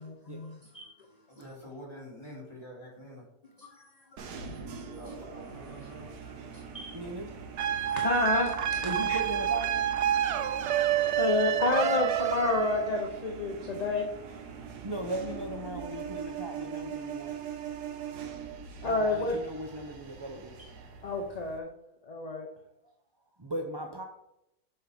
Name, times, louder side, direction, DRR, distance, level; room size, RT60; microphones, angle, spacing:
voice 1, 0.0-1.5 3.6-4.4 4.8-7.0 7.7-9.2 10.6-10.7 11.1-14.1 18.8-19.4 20.6-20.7 21.0-21.7 22.0-22.5, left 2 dB, 35° left, 1 dB, 0.8 m, -31 dB
voice 2, 1.3-3.2 4.9-6.1, equal, 15° left, -3 dB, 2.8 m, -46 dB
sound 1, 4.2-21.6, right 7 dB, 85° right, 1.5 m, -43 dB
voice 3, 6.9-7.3 8.8-9.7 14.8-17.4 18.8-20.6 23.4-24.0, right 1 dB, 30° right, 2 dB, 0.4 m, -37 dB
sound 2, 7.6-13.1, right 9 dB, 70° right, 0.7 m, -28 dB
7.1 x 5.5 x 5.2 m, 0.83 s
omnidirectional pair, 1.7 m